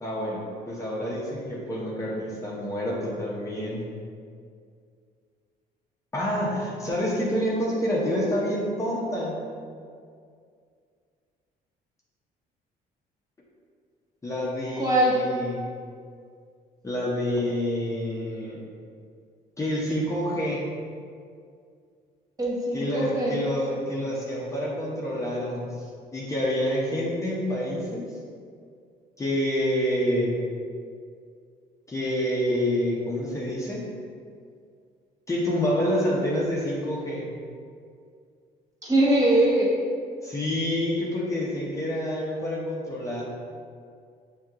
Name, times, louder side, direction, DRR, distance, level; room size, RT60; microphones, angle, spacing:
voice 1, 0.0-3.8 6.1-9.4 14.2-15.7 16.8-18.6 19.6-20.6 22.7-25.6 26.1-28.1 29.2-30.4 31.9-33.9 35.3-37.3 40.2-43.2, equal, 20° left, -6 dB, 0.7 m, -27 dB
voice 2, 14.8-15.2 22.4-23.4 38.8-39.7, right 1 dB, 20° right, -5 dB, 1.0 m, -22 dB
6.2 x 2.7 x 2.4 m, 2.2 s
cardioid pair, 110°, 17 cm